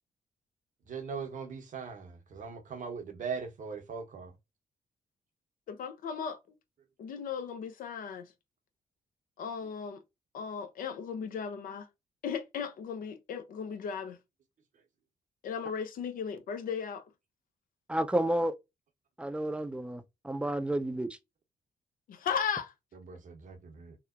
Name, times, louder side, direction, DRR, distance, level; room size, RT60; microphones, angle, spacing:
voice 1, 0.9-4.3 23.0-24.0, right 5 dB, 55° right, 0.7 m, -40 dB
voice 2, 5.7-6.4 7.0-8.3 9.4-10.0 10.3-11.9 12.2-14.2 15.4-17.0 22.1-22.7, left 7 dB, 65° left, 0.6 m, -36 dB
voice 3, 17.9-18.6 19.2-21.2, right 1 dB, 5° right, 0.5 m, -31 dB
2.8 x 2.0 x 2.3 m
hypercardioid pair, 45°, 16 cm